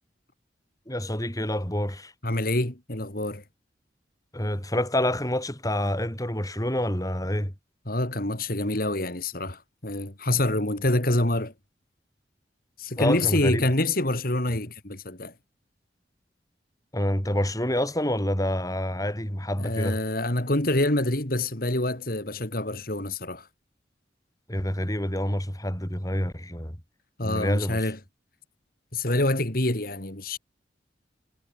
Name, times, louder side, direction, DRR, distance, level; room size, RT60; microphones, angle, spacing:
voice 1, 0.9-2.1 4.3-7.5 13.0-13.6 16.9-20.0 24.5-26.8 27.2-27.9, left 1 dB, 20° left, 7.5 m, -27 dB
voice 2, 2.2-3.4 7.9-11.5 12.8-15.3 19.6-23.5 27.2-28.0 28.9-30.4, left 1 dB, 55° left, 3.8 m, -26 dB
head